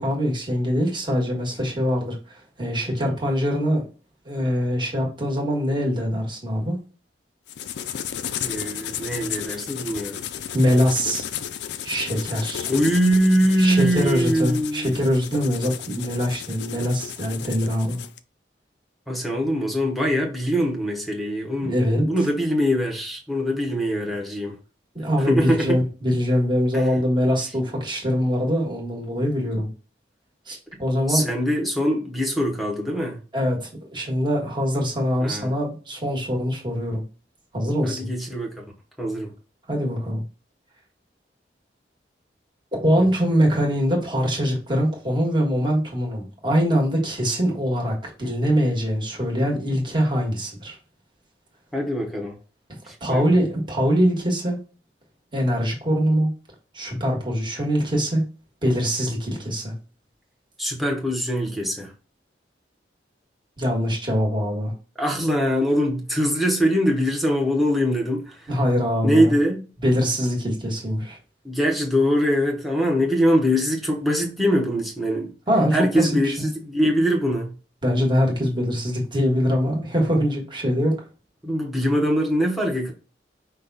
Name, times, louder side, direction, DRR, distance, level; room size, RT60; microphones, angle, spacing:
voice 1, 0.0-3.8 4.2-6.8 10.5-11.2 11.8-12.7 13.6-18.0 21.6-22.1 24.9-29.7 30.5-31.2 33.3-37.0 37.5-38.1 39.7-40.2 42.8-50.8 53.0-54.6 55.3-56.3 56.7-58.2 58.6-59.7 63.6-64.7 68.5-69.3 69.8-71.2 75.5-76.5 77.8-81.0, equal, 25° right, 1.5 m, -23 dB
erasing with eraser on paper, 7.5-18.2, left 9 dB, 70° left, 0.4 m, -33 dB
voice 2, 8.4-10.2 12.7-15.0 19.1-24.6 25.2-25.8 26.7-26.9 31.1-33.2 35.2-35.5 37.8-38.6 39.0-39.3 43.0-43.1 51.7-52.3 52.8-53.4 60.6-61.9 65.0-68.5 69.0-69.7 71.4-75.3 75.7-77.5 81.4-82.9, equal, ahead, 0.9 m, -23 dB
5.4 x 2.3 x 4.0 m
head